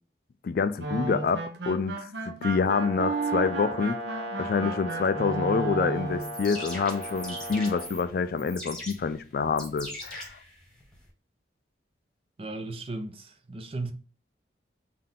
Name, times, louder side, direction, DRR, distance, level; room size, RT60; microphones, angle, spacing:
voice 1, 0.4-4.0 4.4-10.4, left 5 dB, 50° left, 0.3 m, -27 dB
sound 1, 0.8-6.3, right 3 dB, 70° right, 0.7 m, -33 dB
Brass instrument, 2.6-7.9, equal, 90° right, 1.2 m, -37 dB
sound 2, 6.1-11.1, left 1 dB, 5° left, 1.2 m, -41 dB
voice 2, 12.4-13.9, right 2 dB, 30° right, 0.5 m, -36 dB
3.8 x 2.7 x 3.5 m
head